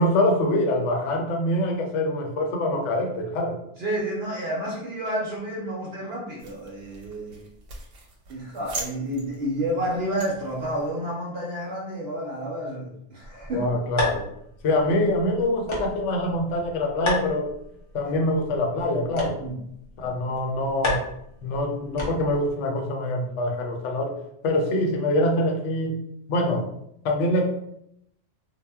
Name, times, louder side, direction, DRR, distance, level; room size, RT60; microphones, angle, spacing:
voice 1, 0.0-3.6 13.5-14.3 14.6-17.5 17.9-19.4 20.0-21.0 21.4-24.2 24.4-26.0 26.3-26.7 27.0-27.5, left 1 dB, 80° left, 2 dB, 0.9 m, -24 dB
voice 2, 3.8-7.4 8.3-13.7 19.4-19.6, right 1 dB, 65° right, -3 dB, 0.8 m, -30 dB
sound 1, 6.4-10.9, right 2 dB, 90° right, 1.0 m, -41 dB
sound 2, 13.2-22.5, left 2 dB, 40° left, 0.4 m, -34 dB
2.1 x 2.0 x 3.4 m, 0.76 s
omnidirectional pair, 1.2 m